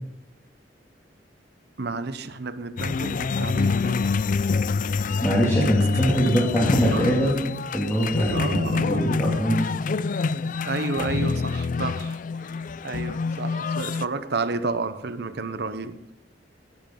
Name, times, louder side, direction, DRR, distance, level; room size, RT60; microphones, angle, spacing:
voice 1, 1.8-4.2 6.2-6.6 6.9-7.5 8.3-9.1 10.6-12.2 12.5-16.0, right 3 dB, 60° right, 12 dB, 0.9 m, -31 dB
sound 1, 2.8-14.1, left 4 dB, 45° left, 0.4 m, -26 dB
voice 2, 4.9-9.7, equal, 15° left, -6 dB, 2.6 m, -23 dB
18.5 x 11.5 x 3.9 m, 0.83 s
head